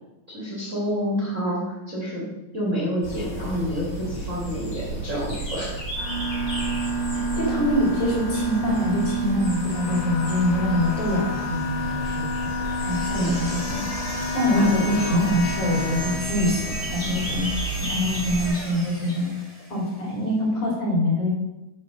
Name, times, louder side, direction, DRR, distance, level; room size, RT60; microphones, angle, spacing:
voice 1, 0.3-2.3 2.5-5.9 13.1-13.3 14.5-15.2, equal, 85° right, -6 dB, 0.6 m, -29 dB
sound 1, 3.0-18.5, right 1 dB, 25° left, 2.0 m, -33 dB
sound 2, 6.0-16.1, right 1 dB, 80° left, 5.0 m, -29 dB
voice 2, 7.4-12.5 12.8-13.9 14.3-17.5 17.8-19.3 19.7-21.3, left 1 dB, 45° left, -5 dB, 3.9 m, -24 dB
sound 3, 12.7-20.0, right 1 dB, 20° right, 0.5 m, -36 dB
9.2 x 4.2 x 5.4 m, 1.0 s
omnidirectional pair, 5.1 m